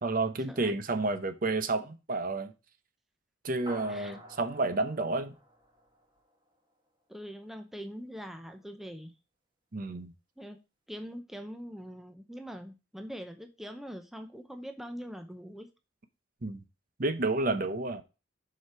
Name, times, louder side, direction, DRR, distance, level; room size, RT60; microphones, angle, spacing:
voice 1, 0.0-2.5 3.4-5.3 9.7-10.1 16.4-16.6 17.0-18.0, right 2 dB, 45° right, 0.7 m, -30 dB
sound 1, 3.7-6.4, right 1 dB, 25° right, 2.0 m, -48 dB
voice 2, 7.1-9.1 10.4-10.6 10.9-15.7, equal, ahead, 0.6 m, -43 dB
7.0 x 5.1 x 4.6 m
head